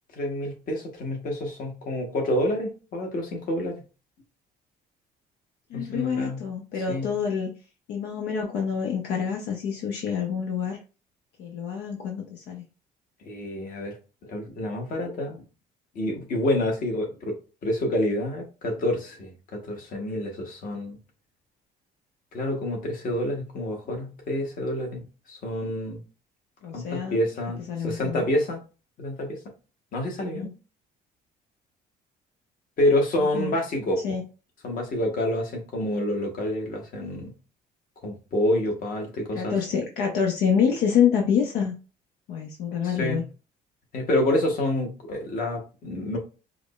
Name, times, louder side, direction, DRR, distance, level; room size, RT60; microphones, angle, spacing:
voice 1, 0.1-3.8 5.7-6.4 6.9-7.1 13.2-13.9 14.2-15.4 15.9-17.4 17.6-21.0 22.3-26.0 26.7-28.6 29.0-29.4 29.9-30.5 32.8-34.0 34.6-37.3 38.0-39.5 42.8-43.2 43.9-46.2, left 1 dB, 55° left, 2 dB, 1.2 m, -28 dB
voice 2, 5.7-7.5 7.9-10.8 11.4-12.6 26.6-27.2 27.7-28.2 30.2-30.5 33.2-33.6 34.0-34.2 39.3-41.7 42.3-43.2, left 7 dB, 80° left, 1 dB, 0.7 m, -27 dB
4.8 x 2.1 x 2.4 m, 0.33 s
cardioid pair, 110°, 17 cm